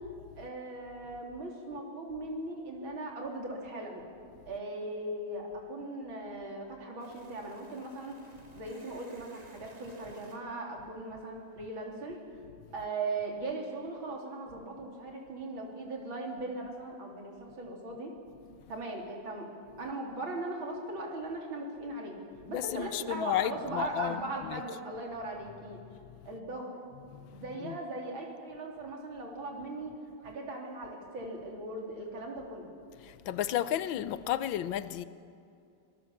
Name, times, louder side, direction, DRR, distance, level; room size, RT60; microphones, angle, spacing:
voice 1, 0.4-4.0 4.5-12.2 12.7-18.1 18.7-19.5 19.8-22.2 22.5-25.8 26.3-26.8 27.3-29.9 30.2-32.7, right 2 dB, 80° right, 4.0 m, -39 dB
sound 1, 7.0-11.8, right 1 dB, 20° right, 2.5 m, -58 dB
voice 2, 22.5-24.2 24.5-24.6 27.1-27.3 27.6-27.8 33.3-35.0, left 12 dB, 75° left, 1.4 m, -32 dB
24.5 x 19.5 x 7.2 m
omnidirectional pair, 2.2 m